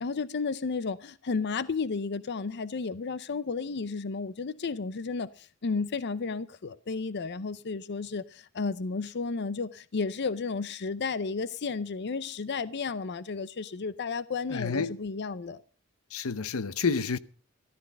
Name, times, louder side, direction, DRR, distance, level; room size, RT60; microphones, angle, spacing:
voice 1, 0.0-15.6, left 4 dB, 55° left, 0.6 m, -33 dB
voice 2, 14.5-14.9 16.1-17.2, left 5 dB, 85° left, 0.8 m, -29 dB
14.0 x 13.5 x 5.3 m
head